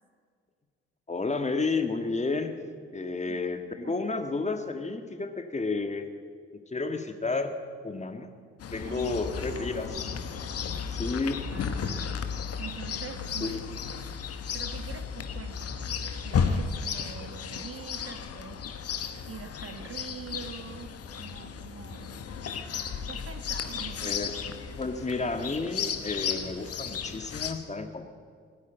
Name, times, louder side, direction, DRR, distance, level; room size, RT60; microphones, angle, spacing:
voice 1, 1.1-2.6 2.9-6.1 6.5-7.6 7.8-8.3 8.7-10.1 10.9-11.4 13.4-13.6 24.0-24.3 24.8-28.1, left 3 dB, 25° left, 7 dB, 1.8 m, -31 dB
voice 2, 3.2-4.2 8.8-10.2 11.4-13.6 14.5-18.7 19.3-20.9 21.2-22.2 23.1-24.2, right 7 dB, 50° right, 9 dB, 1.5 m, -44 dB
Chirp tweet, 8.6-27.5, left 6 dB, 55° left, 1.2 m, -34 dB
17.0 x 9.6 x 8.1 m, 2.1 s
hypercardioid pair, 40°, 29 cm